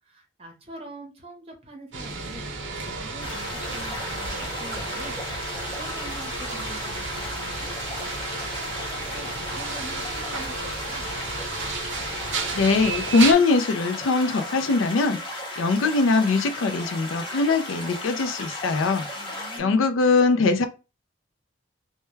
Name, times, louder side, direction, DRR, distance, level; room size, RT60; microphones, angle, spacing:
voice 1, 0.0-5.2 5.5-11.1 19.1-19.9, right 2 dB, 30° right, 0.7 m, -44 dB
sound 1, 1.9-13.3, right 4 dB, 65° right, 0.6 m, -32 dB
sound 2, 3.2-19.6, left 1 dB, 25° left, 0.6 m, -35 dB
voice 2, 12.5-19.1 19.3-20.7, left 3 dB, 80° left, 0.4 m, -22 dB
2.2 x 2.2 x 3.0 m
head